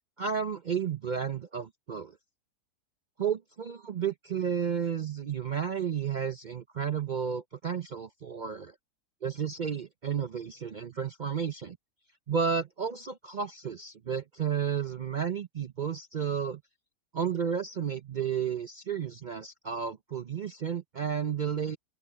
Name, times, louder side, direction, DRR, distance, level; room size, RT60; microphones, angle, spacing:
voice 1, 0.2-2.2 3.2-8.7 9.2-11.8 12.3-16.6 17.1-21.8, right 7 dB, 60° right, 0.5 m, -32 dB
open air
omnidirectional pair, 1.6 m